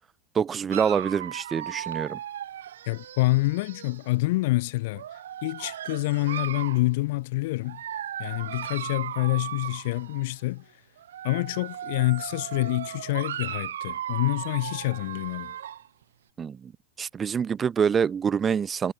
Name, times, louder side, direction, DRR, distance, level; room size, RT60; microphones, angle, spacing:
voice 1, 0.3-2.2 16.4-16.7 17.0-18.9, right 7 dB, 25° right, 1.6 m, -26 dB
Dog, 0.7-4.1 4.9-6.9 7.7-10.3 11.0-15.9, right 10 dB, 90° right, 4.2 m, -36 dB
voice 2, 2.9-5.0 5.4-7.8 8.2-10.6 11.2-15.5, left 20 dB, 65° left, 4.1 m, -27 dB
supercardioid pair, 125°, 0 cm